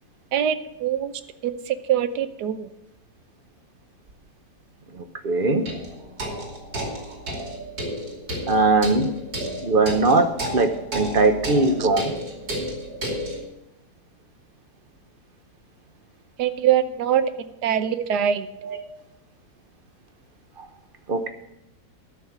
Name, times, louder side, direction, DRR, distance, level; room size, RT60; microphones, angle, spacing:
voice 1, 0.3-1.1 1.4-2.7 11.8-11.9 16.4-18.5, right 9 dB, 75° right, 11 dB, 1.3 m, -23 dB
sound 1, 4.1-4.2 5.7-13.4, right 1 dB, 60° right, 3.2 m, -32 dB
voice 2, 5.0-5.7 8.5-9.1 9.6-12.1 18.6-18.8 21.1-21.3, right 3 dB, 40° right, 7 dB, 0.9 m, -20 dB
12.5 x 6.5 x 7.2 m, 0.86 s
omnidirectional pair, 1.9 m